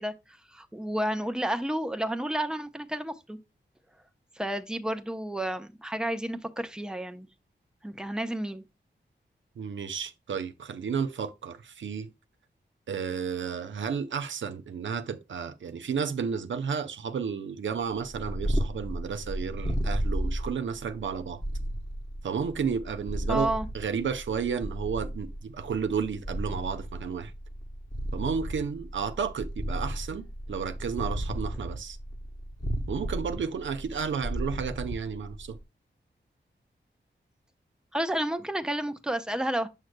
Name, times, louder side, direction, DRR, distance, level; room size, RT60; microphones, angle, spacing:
voice 1, 0.0-3.4 4.4-7.3 7.8-8.6 23.3-23.7 37.9-39.7, right 1 dB, 5° right, 0.7 m, -31 dB
voice 2, 9.6-12.1 12.9-21.4 22.2-27.3 28.1-32.0 32.9-35.6, right 6 dB, 90° right, 0.6 m, -32 dB
Purr, 18.1-35.6, equal, 20° left, 1.0 m, -34 dB
7.2 x 6.3 x 2.2 m
wide cardioid pair, 65°, 19 cm